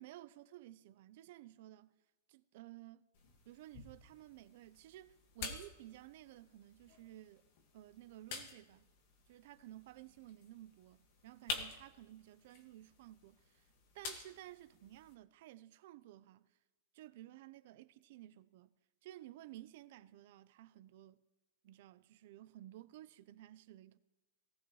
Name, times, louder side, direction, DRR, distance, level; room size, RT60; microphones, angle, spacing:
voice 1, 0.0-1.9 2.3-3.0 3.5-7.4 7.7-8.9 9.3-13.7 13.9-16.4 16.9-18.7 19.0-21.2 21.6-24.0, right 14 dB, 55° right, 0.6 m, -55 dB
sound 1, 3.1-15.1, left 4 dB, 45° left, 1.8 m, -50 dB
18.5 x 16.0 x 3.2 m
supercardioid pair, 160°, 0 cm